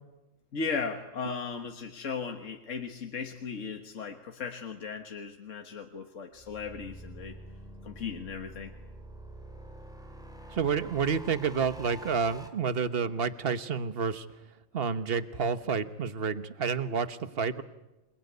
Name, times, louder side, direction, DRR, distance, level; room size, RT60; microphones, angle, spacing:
voice 1, 0.5-7.4 7.8-8.7, left 5 dB, 70° left, 5 dB, 1.9 m, -37 dB
sound 1, 6.3-12.5, right 1 dB, 5° right, 2.5 m, -47 dB
voice 2, 10.5-14.3 14.7-17.6, right 6 dB, 50° right, 12 dB, 1.4 m, -29 dB
27.5 x 21.0 x 9.6 m, 1.0 s
omnidirectional pair, 1.3 m